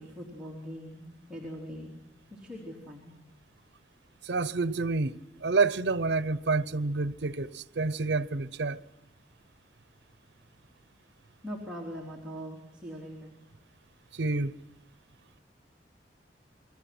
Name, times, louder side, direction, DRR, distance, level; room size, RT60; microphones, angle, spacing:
voice 1, 0.0-1.9 2.3-3.1 11.4-13.4, equal, 5° right, 3.5 m, -41 dB
voice 2, 4.2-8.8 14.1-14.6, right 3 dB, 75° right, 0.8 m, -28 dB
28.5 x 22.0 x 6.1 m
head